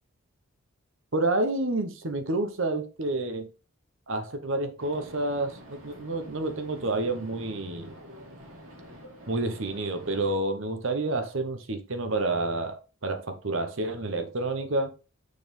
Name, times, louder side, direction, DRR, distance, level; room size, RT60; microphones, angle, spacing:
voice 1, 1.1-3.5 4.1-7.9 9.3-14.9, right 2 dB, 60° right, 1.1 m, -29 dB
sound 1, 4.8-10.4, equal, 85° right, 2.5 m, -47 dB
6.7 x 4.2 x 5.3 m
head